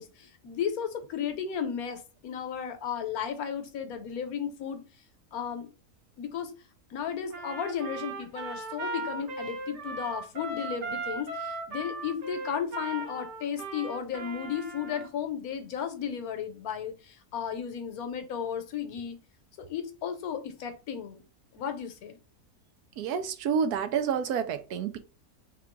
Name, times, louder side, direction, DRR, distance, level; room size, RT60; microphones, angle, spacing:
voice 1, 0.0-4.8 5.3-5.7 6.2-6.5 6.9-19.2 19.6-21.2 21.5-22.2, left 8 dB, 70° left, 1.2 m, -34 dB
Trumpet, 7.3-15.1, right 3 dB, 50° right, 1.2 m, -37 dB
voice 2, 23.0-25.0, right 7 dB, 80° right, 1.1 m, -29 dB
3.6 x 2.4 x 4.4 m
omnidirectional pair, 1.6 m